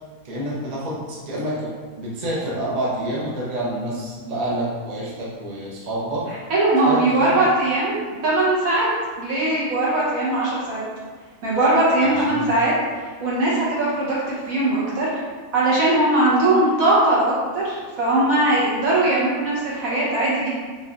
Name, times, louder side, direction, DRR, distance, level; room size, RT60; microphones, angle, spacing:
voice 1, 0.2-1.7 2.0-6.2 6.8-7.3 12.0-12.5, right 1 dB, 40° right, -6 dB, 0.6 m, -28 dB
voice 2, 6.5-8.9 9.2-10.8 11.4-12.7 13.2-15.1 15.5-20.5, right 2 dB, 65° right, -7 dB, 1.4 m, -20 dB
3.8 x 2.8 x 2.5 m, 1.5 s
omnidirectional pair, 1.6 m